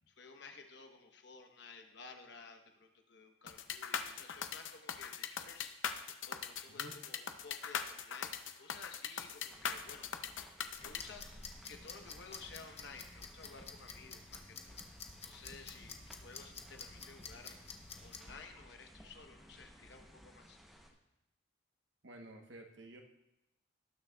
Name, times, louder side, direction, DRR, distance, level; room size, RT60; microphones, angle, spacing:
voice 1, 0.1-5.7 6.3-10.1 10.4-11.2 11.6-14.8 15.1-17.6 18.0-20.6, left 4 dB, 60° left, 5 dB, 1.0 m, -54 dB
sound 1, 3.5-11.0, left 7 dB, 75° left, 0.6 m, -40 dB
sound 2, 9.5-20.9, equal, ahead, 0.8 m, -58 dB
sound 3, 10.8-18.2, left 5 dB, 30° left, 0.8 m, -51 dB
voice 2, 22.0-23.0, right 1 dB, 65° right, 3 dB, 1.0 m, -52 dB
18.0 x 6.3 x 2.3 m, 0.92 s
head